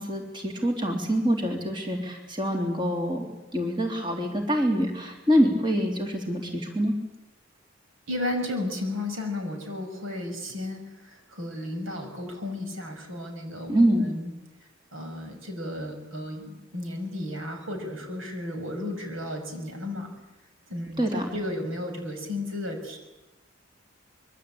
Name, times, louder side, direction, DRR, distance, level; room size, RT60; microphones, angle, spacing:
voice 1, 0.0-6.9 13.7-14.1 21.0-21.3, equal, 25° right, 2 dB, 3.5 m, -25 dB
voice 2, 8.1-14.3 14.9-20.1 20.7-21.0 21.3-23.0, left 1 dB, 85° right, 4 dB, 6.1 m, -33 dB
25.0 x 23.5 x 8.8 m, 1.0 s
head